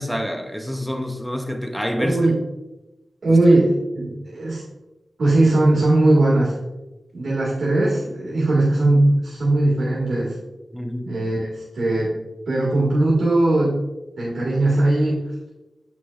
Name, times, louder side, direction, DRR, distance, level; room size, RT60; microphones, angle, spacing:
voice 1, 0.0-2.3 3.3-3.4 10.7-11.1, equal, ahead, 4 dB, 0.5 m, -27 dB
voice 2, 2.0-2.3 3.2-4.6 5.2-6.5 7.1-10.4 11.0-12.1 12.5-13.8 14.2-15.2, right 2 dB, 65° right, -8 dB, 1.9 m, -19 dB
8.1 x 6.1 x 2.4 m, 1.0 s
wide cardioid pair, 130°, 0 cm